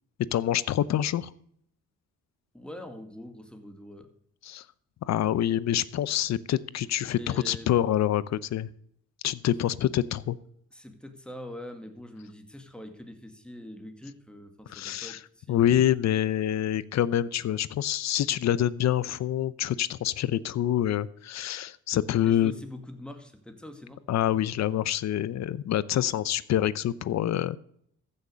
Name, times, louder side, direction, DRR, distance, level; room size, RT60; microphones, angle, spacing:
voice 1, 0.3-1.3 4.4-4.6 5.1-8.7 9.2-10.4 14.7-15.2 15.5-22.5 24.1-27.6, left 11 dB, 65° left, 19 dB, 0.7 m, -26 dB
voice 2, 2.5-4.1 7.1-7.7 10.7-16.0 22.2-24.0, left 1 dB, 5° left, 5 dB, 2.3 m, -44 dB
15.0 x 6.6 x 6.8 m, 0.68 s
cardioid pair, 90°, 30 cm